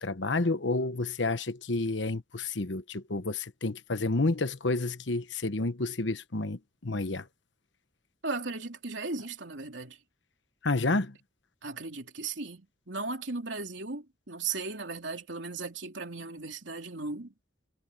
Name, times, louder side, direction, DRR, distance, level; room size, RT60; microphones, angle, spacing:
voice 1, 0.0-7.3 10.6-11.2, left 2 dB, 75° left, 1.2 m, -30 dB
voice 2, 8.2-10.0 11.6-17.3, right 3 dB, 80° right, 3.4 m, -36 dB
head